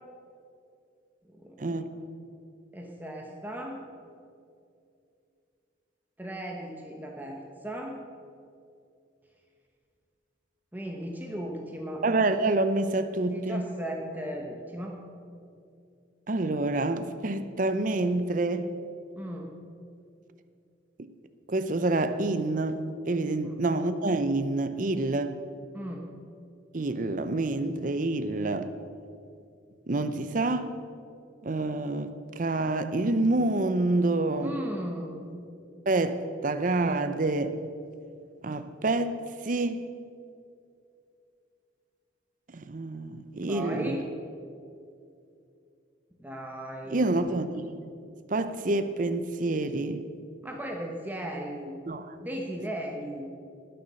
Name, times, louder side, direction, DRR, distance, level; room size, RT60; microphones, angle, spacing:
voice 1, 1.2-1.9 2.7-3.8 6.2-8.0 10.7-12.0 13.3-15.0 19.2-19.5 23.4-23.6 25.7-26.1 34.4-35.3 43.5-44.0 46.2-47.2 50.4-51.7 52.2-53.3, equal, 10° right, 1 dB, 1.0 m, -36 dB
voice 2, 12.0-13.7 16.3-18.8 21.5-25.4 26.7-28.7 29.9-30.8 31.4-34.5 35.9-37.6 38.4-39.9 42.5-44.0 46.9-47.7 48.3-50.0 51.9-52.2, right 2 dB, 45° right, 10 dB, 0.6 m, -27 dB
19.0 x 6.9 x 6.4 m, 2.5 s
head